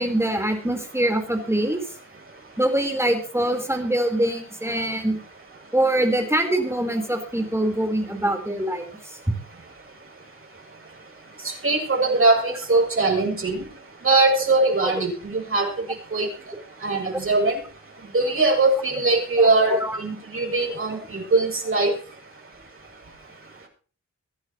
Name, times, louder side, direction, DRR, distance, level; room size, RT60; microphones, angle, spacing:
voice 1, 0.0-1.8 2.6-5.2 5.7-8.9 14.8-15.0 17.1-17.2 19.4-19.5 19.8-20.0, right 1 dB, 10° right, 4 dB, 4.3 m, -24 dB
voice 2, 11.6-13.6 14.0-15.7 16.1-16.3 16.8-17.6 18.1-21.9, right 3 dB, 45° right, 0 dB, 7.7 m, -21 dB
23.5 x 10.5 x 3.1 m, 0.40 s
wide cardioid pair, 95°, 31 cm